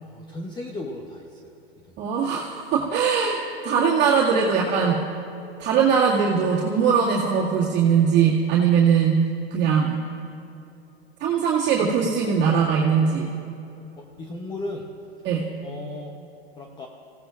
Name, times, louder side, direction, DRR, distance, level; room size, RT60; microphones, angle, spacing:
voice 1, 0.0-1.5 14.0-14.9 15.6-16.2 16.5-16.9, left 2 dB, 15° left, 2 dB, 0.9 m, -35 dB
voice 2, 2.0-3.4 3.6-5.0 5.6-9.2 9.5-10.0 11.2-13.3 15.2-15.4, right 6 dB, 35° right, -7 dB, 2.2 m, -20 dB
26.0 x 16.5 x 2.5 m, 2.9 s
hypercardioid pair, 125°, 32 cm